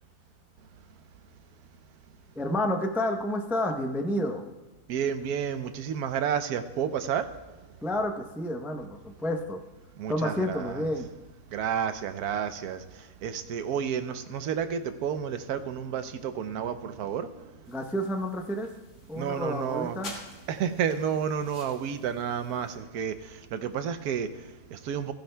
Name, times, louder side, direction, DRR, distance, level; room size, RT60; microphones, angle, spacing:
voice 1, 2.4-4.4 7.8-9.6 10.1-11.1 17.7-18.7 19.1-20.1, left 1 dB, 5° right, 0.3 m, -30 dB
voice 2, 4.9-7.7 9.9-10.9 11.5-17.7 19.1-20.0 20.5-25.1, right 8 dB, 80° right, 1.2 m, -31 dB
sound 1, 17.7-22.8, left 2 dB, 50° left, 1.9 m, -49 dB
15.5 x 14.5 x 2.3 m
omnidirectional pair, 1.6 m